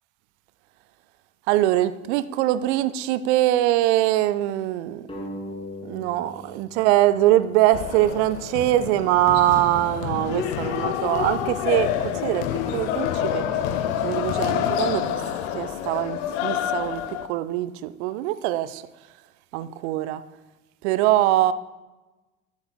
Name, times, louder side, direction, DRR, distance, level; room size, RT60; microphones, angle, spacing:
voice 1, 1.5-5.1 5.8-12.5 12.7-13.5 14.0-15.2 15.5-18.8 19.5-20.2 20.8-21.5, right 14 dB, 55° right, 14 dB, 0.6 m, -23 dB
sound 1, 5.1-8.3, left 1 dB, 15° left, 2.7 m, -40 dB
sound 2, 7.7-17.3, left 9 dB, 55° left, 0.7 m, -27 dB
12.0 x 8.1 x 2.2 m, 1.1 s
figure-of-eight pair, 70°, 41 cm